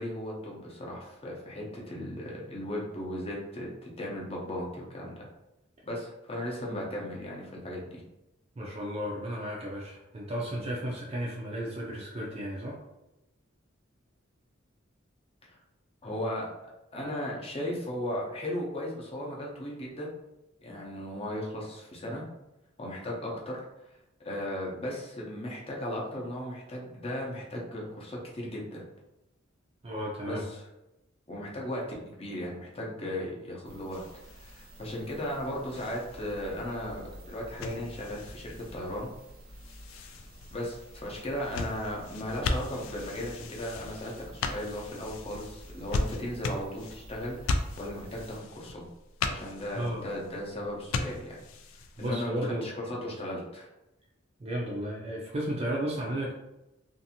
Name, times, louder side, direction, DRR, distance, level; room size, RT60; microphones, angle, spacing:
voice 1, 0.0-5.3 5.8-8.0 15.5-15.6 16.0-16.5 16.9-20.1 20.6-22.2 22.8-23.7 24.2-28.8 30.2-30.6 31.3-31.8 32.2-34.0 34.4-39.1 40.5-48.9 49.3-51.4 52.0-53.7, left 1 dB, 30° left, -2 dB, 0.6 m, -36 dB
voice 2, 8.6-12.8 29.8-30.4 49.3-49.4 49.7-50.0 52.0-52.7 54.4-56.3, equal, 30° right, -3 dB, 0.4 m, -34 dB
sound 1, 33.6-48.4, equal, 75° right, 0.7 m, -50 dB
sound 2, 33.9-52.1, left 3 dB, 80° left, 0.3 m, -38 dB
2.6 x 2.5 x 2.7 m, 0.92 s
head